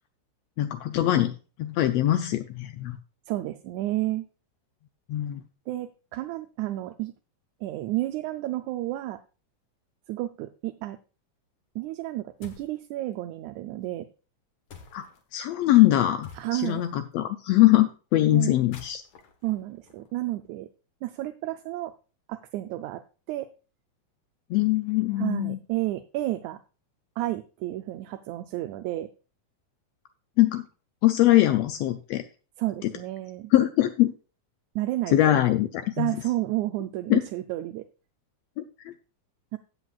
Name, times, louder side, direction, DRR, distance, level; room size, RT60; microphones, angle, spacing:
voice 1, 0.6-1.3 1.6-3.0 5.1-5.4 14.9-15.1 15.3-19.0 24.5-25.6 30.4-30.6 31.0-32.2 32.8-32.9 33.5-34.1 35.1-36.1 37.1-37.2 38.6-38.9, left 15 dB, 85° left, 9 dB, 1.4 m, -22 dB
voice 2, 3.3-4.3 5.7-7.1 7.6-9.2 10.1-11.0 11.8-14.1 16.4-16.8 18.3-18.5 19.4-20.7 21.0-21.9 22.3-23.0 23.3-23.5 25.2-26.6 27.2-29.1 32.6-33.5 34.8-35.4 36.0-37.9 39.5-39.6, right 16 dB, 80° right, 8 dB, 1.9 m, -31 dB
sound 1, 12.4-12.8 14.7-15.2 16.2-16.9 18.5-20.5, left 5 dB, 55° left, 2.1 m, -49 dB
15.0 x 8.1 x 2.4 m, 0.34 s
omnidirectional pair, 3.5 m